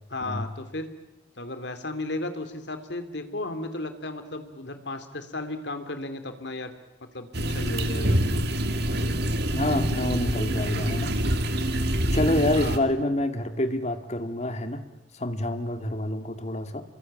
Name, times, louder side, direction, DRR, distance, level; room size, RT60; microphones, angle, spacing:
voice 1, 0.1-0.9 1.4-6.7 7.1-8.2 12.6-12.8, left 2 dB, 65° left, 8 dB, 2.9 m, -34 dB
sound 1, 7.3-12.8, equal, 60° right, 2.3 m, -26 dB
voice 2, 9.5-11.1 12.1-14.8 15.1-16.8, left 1 dB, 40° left, 8 dB, 2.1 m, -27 dB
28.0 x 23.0 x 8.9 m, 0.90 s
head